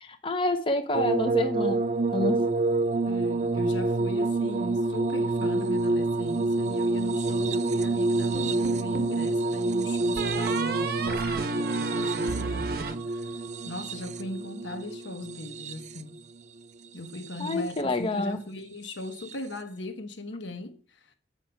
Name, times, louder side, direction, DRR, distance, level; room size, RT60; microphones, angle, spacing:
voice 1, 0.0-1.8 2.1-2.4 17.4-18.4, left 2 dB, 30° left, 0.8 m, -28 dB
sound 1, 0.9-16.2 17.1-17.8 19.2-19.3, right 2 dB, 40° right, 0.4 m, -27 dB
voice 2, 3.1-13.3 13.6-16.2 16.9-21.1, left 1 dB, 80° left, 1.2 m, -39 dB
sound 2, 8.3-9.2 10.2-13.6, right 3 dB, 55° right, 1.0 m, -33 dB
8.2 x 5.7 x 5.7 m
head